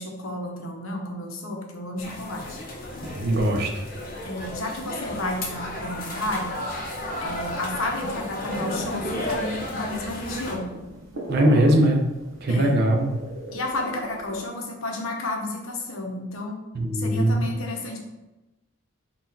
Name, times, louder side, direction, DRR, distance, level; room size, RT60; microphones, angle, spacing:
voice 1, 0.0-2.6 4.2-6.6 7.2-10.7 12.5-12.8 13.5-16.6 16.9-18.0, left 2 dB, 75° left, 2 dB, 0.8 m, -32 dB
sound 1, 2.0-10.6, left 1 dB, 40° left, 0.6 m, -33 dB
voice 2, 3.0-3.9 11.3-12.0 12.4-13.1 16.7-17.4, right 1 dB, 50° right, 1 dB, 0.6 m, -21 dB
sound 2, 5.9-14.5, equal, 65° right, 0.9 m, -36 dB
4.0 x 2.3 x 4.0 m, 1.0 s
head